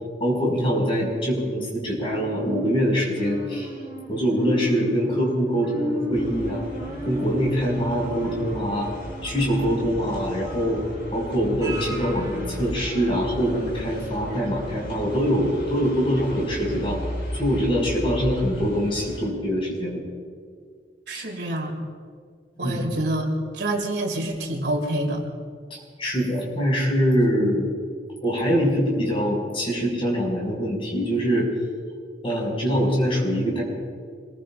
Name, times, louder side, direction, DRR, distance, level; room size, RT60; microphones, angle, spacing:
voice 1, 0.2-3.7 4.1-6.7 7.0-8.9 9.2-10.8 11.1-17.0 17.3-20.0 21.1-21.2 22.6-22.9 25.7-27.7 28.2-31.5 32.2-33.6, equal, 30° left, -3 dB, 5.8 m, -24 dB
sound 1, 2.1-13.6 14.0-14.1, equal, 20° right, 2.4 m, -35 dB
sound 2, 6.1-19.3, left 1 dB, 60° left, 4.0 m, -36 dB
voice 2, 21.1-21.9 22.6-25.2, right 1 dB, 70° right, 2 dB, 2.5 m, -27 dB
26.0 x 22.0 x 2.5 m, 2.1 s
head